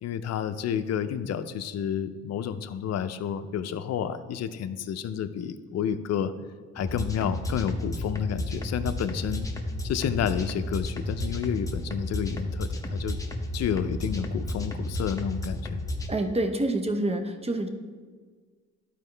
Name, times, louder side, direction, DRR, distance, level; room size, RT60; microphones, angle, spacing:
voice 1, 0.0-6.3 6.7-9.5 9.8-13.2 13.5-15.8, left 8 dB, 60° left, 10 dB, 0.6 m, -30 dB
sound 1, 6.8-16.1, left 1 dB, 10° left, 0.9 m, -32 dB
voice 2, 16.1-17.7, right 1 dB, 20° right, 5 dB, 0.8 m, -27 dB
12.0 x 4.6 x 3.3 m, 1.5 s
cardioid pair, 90°, 30 cm